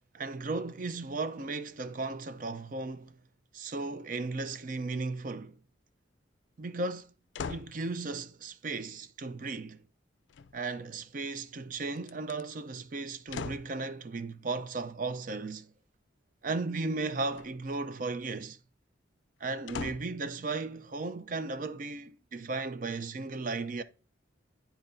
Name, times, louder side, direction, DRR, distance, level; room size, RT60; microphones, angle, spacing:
voice 1, 0.1-3.2 3.5-5.6 6.6-7.1 7.5-9.8 10.5-15.7 16.4-18.6 19.4-23.8, right 3 dB, 45° right, 0.5 m, -35 dB
sound 1, 7.3-7.8 10.3-11.0 12.0-12.4 13.3-13.8 17.3-17.8 19.7-20.2 20.9-21.0, left 5 dB, 70° left, 0.4 m, -40 dB
10.5 x 4.6 x 2.6 m
head